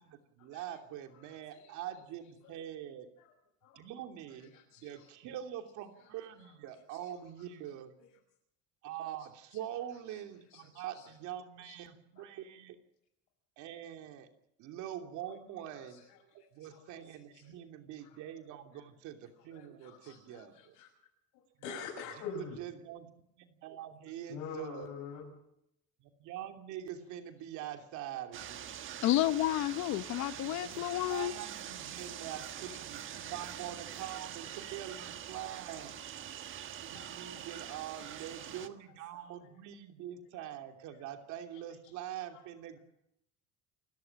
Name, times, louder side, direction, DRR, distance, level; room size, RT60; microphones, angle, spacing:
voice 1, 0.0-3.1 3.7-7.9 8.8-12.8 13.6-14.3 14.6-15.9 16.5-20.7 21.6-21.7 22.2-23.1 23.4-24.9 26.2-28.8 30.3-36.0 36.7-42.8, right 11 dB, 75° right, 5 dB, 3.0 m, -44 dB
voice 2, 1.2-1.7 3.2-3.3 3.6-3.8 4.3-5.1 6.0-6.1 6.4-7.1 7.4-7.5 8.0-8.1 10.1-10.2 10.5-11.1 11.6-11.7 12.2-12.3 15.7-16.0 16.6-17.4 18.0-18.2 19.4-20.9 21.3-22.6 24.3-25.3 30.2-30.6 30.9-32.2 32.6-32.7 33.1-33.2 34.0-34.7 35.9-36.0 36.7-38.7 39.1-39.3 40.4-40.5 42.8-42.9, left 5 dB, 85° left, -2 dB, 7.3 m, -49 dB
sound 1, 28.3-38.7, right 10 dB, 40° right, 1.4 m, -44 dB
voice 3, 29.0-31.3, left 14 dB, 65° left, 14 dB, 1.0 m, -30 dB
29.0 x 14.0 x 8.9 m, 0.79 s
cardioid pair, 160°, 30 cm